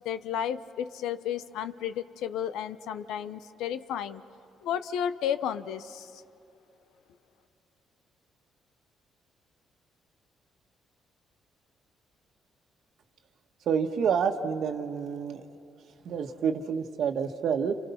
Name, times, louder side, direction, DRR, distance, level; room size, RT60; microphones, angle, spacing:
voice 1, 0.0-4.2 4.6-6.2, left 9 dB, 90° left, 12 dB, 0.8 m, -33 dB
voice 2, 13.6-15.4 16.0-17.8, right 7 dB, 70° right, 7 dB, 1.5 m, -28 dB
30.0 x 27.5 x 5.8 m, 2.8 s
cardioid pair, 90°, 0 cm